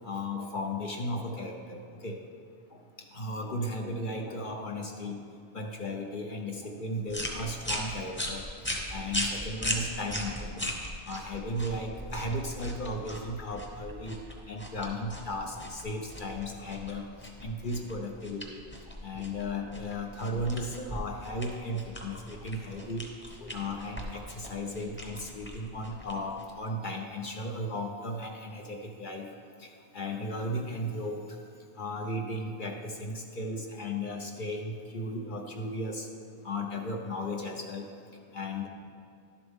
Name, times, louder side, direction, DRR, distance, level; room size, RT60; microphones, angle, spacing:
voice 1, 0.0-2.2 3.1-5.2 5.5-8.4 8.9-10.7 11.1-14.2 14.5-17.1 17.4-18.6 19.0-23.0 23.4-29.3 29.6-29.7 29.9-31.2 31.8-36.1 36.4-37.9 38.3-38.7, left 1 dB, 50° left, 1 dB, 0.8 m, -35 dB
sound 1, 7.1-26.6, equal, 10° left, 0.9 m, -39 dB
12.0 x 7.1 x 3.6 m, 2.4 s
omnidirectional pair, 1.2 m